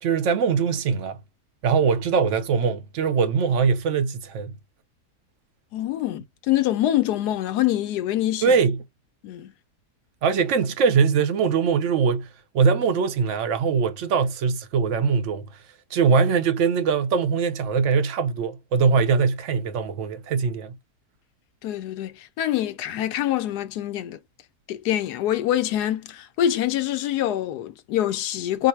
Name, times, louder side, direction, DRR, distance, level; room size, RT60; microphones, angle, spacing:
voice 1, 0.0-1.2 1.6-4.6 8.4-8.8 10.2-12.3 12.5-15.5 15.9-20.8, right 5 dB, 60° right, 0.9 m, -22 dB
voice 2, 5.7-8.5 9.2-9.5 21.6-24.2 24.7-28.7, left 12 dB, 85° left, 1.2 m, -25 dB
4.8 x 2.1 x 4.3 m
omnidirectional pair, 1.7 m